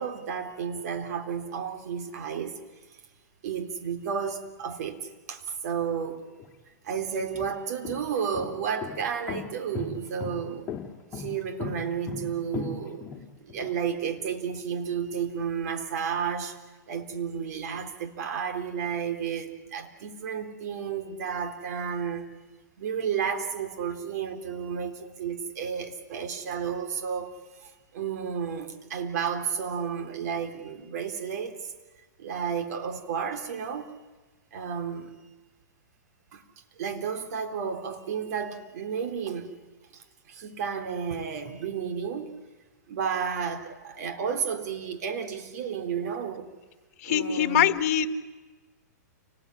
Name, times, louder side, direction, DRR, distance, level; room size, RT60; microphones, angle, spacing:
voice 1, 0.0-2.6 3.4-6.3 6.8-10.7 11.1-13.0 13.4-16.5 16.9-22.3 22.8-27.3 27.9-31.6 32.2-33.9 34.5-35.1 36.3-36.4 36.8-39.6 40.3-42.3 42.9-46.5 47.1-47.8, right 7 dB, 60° right, 3.7 m, -32 dB
sound 1, 6.4-6.5 7.2-13.7, left 6 dB, 20° left, 3.5 m, -37 dB
voice 2, 47.0-48.2, left 9 dB, 50° left, 1.8 m, -24 dB
29.5 x 19.5 x 9.9 m
hypercardioid pair, 135°, 10 cm